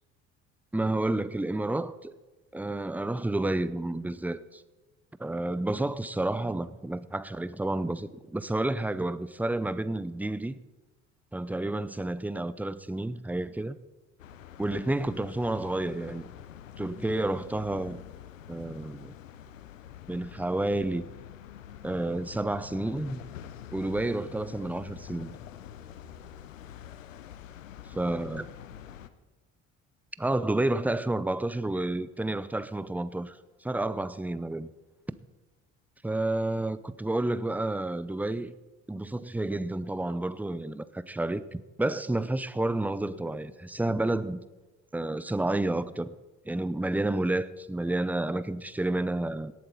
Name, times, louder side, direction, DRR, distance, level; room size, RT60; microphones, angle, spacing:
voice 1, 0.7-2.1 2.5-4.6 5.2-10.6 11.3-13.8 14.6-16.3 16.8-18.0 18.5-19.1 20.1-21.1 21.8-23.2 23.7-25.4 27.9-28.5 30.2-34.7 36.0-38.5 38.9-44.4 44.9-46.2 46.5-49.5, right 2 dB, 5° right, 0.6 m, -30 dB
sound 1, 14.2-29.1, left 10 dB, 85° left, 0.8 m, -46 dB
18.0 x 12.0 x 4.2 m
figure-of-eight pair, 55°, 38 cm